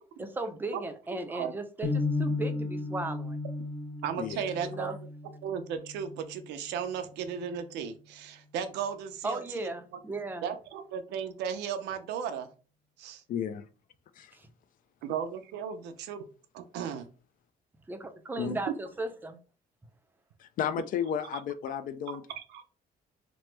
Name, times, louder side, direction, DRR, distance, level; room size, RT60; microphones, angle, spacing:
voice 1, 0.2-3.4 4.6-5.0 9.2-10.5 14.3-14.5 17.9-19.4, right 2 dB, 10° right, 0.5 m, -36 dB
voice 2, 1.1-1.5 4.0-4.9 5.4-9.7 10.4-12.5 13.0-13.2 15.0-16.2 16.5-17.1 22.4-22.6, right 7 dB, 85° right, 0.5 m, -35 dB
sound 1, 1.8-7.9, left 3 dB, 30° left, 0.7 m, -35 dB
voice 3, 4.2-4.5 13.3-13.7 14.2-14.3 18.4-18.6 20.4-22.2, left 8 dB, 55° left, 0.4 m, -33 dB
2.9 x 2.0 x 3.2 m
cardioid pair, 110°, 17 cm